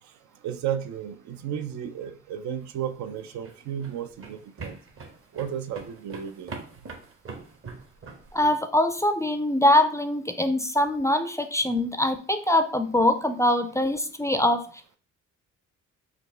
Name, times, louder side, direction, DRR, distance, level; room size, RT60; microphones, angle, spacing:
voice 1, 0.4-4.8 5.4-6.6, right 9 dB, 70° right, 9 dB, 0.5 m, -33 dB
sound 1, 2.9-8.6, right 4 dB, 45° right, 1.0 m, -42 dB
voice 2, 8.3-15.0, left 1 dB, 10° left, 8 dB, 0.4 m, -23 dB
5.8 x 2.3 x 3.2 m, 0.41 s
cardioid pair, 90°, 30 cm